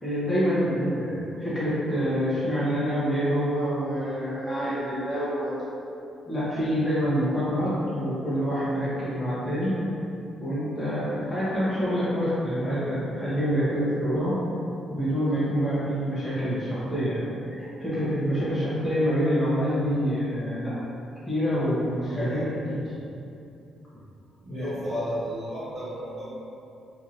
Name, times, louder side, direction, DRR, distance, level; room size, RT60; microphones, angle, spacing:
voice 1, 0.0-5.6 6.3-9.8 10.4-14.4 14.9-20.7 21.3-22.8 24.5-24.7, equal, 10° left, -12 dB, 0.9 m, -26 dB
voice 2, 22.1-22.7 24.4-26.2, equal, 40° right, -12 dB, 1.5 m, -33 dB
2.8 x 2.7 x 2.5 m, 2.7 s
cardioid pair, 90°, 0 cm